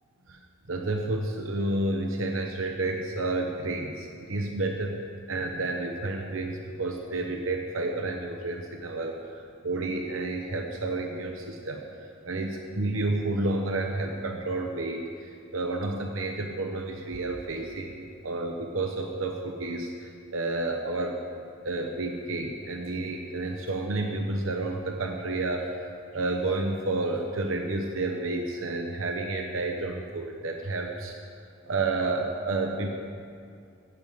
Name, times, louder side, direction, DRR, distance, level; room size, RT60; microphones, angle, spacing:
voice 1, 0.7-5.0 5.3-11.8 12.2-21.2 21.6-25.7 26.1-31.2 31.7-32.9, right 2 dB, 90° right, 2 dB, 0.9 m, -30 dB
16.5 x 7.7 x 5.1 m, 2.4 s
head